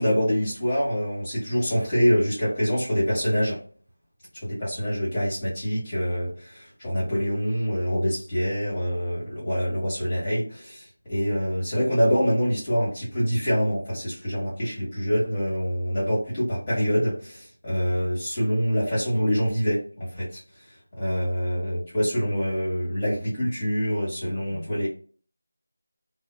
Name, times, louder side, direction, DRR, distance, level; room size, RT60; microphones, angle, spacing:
voice 1, 0.0-3.6 4.3-20.4 21.0-24.9, equal, 20° left, -8 dB, 1.2 m, -25 dB
2.7 x 2.1 x 2.2 m, 0.42 s
figure-of-eight pair, 170°, 0 cm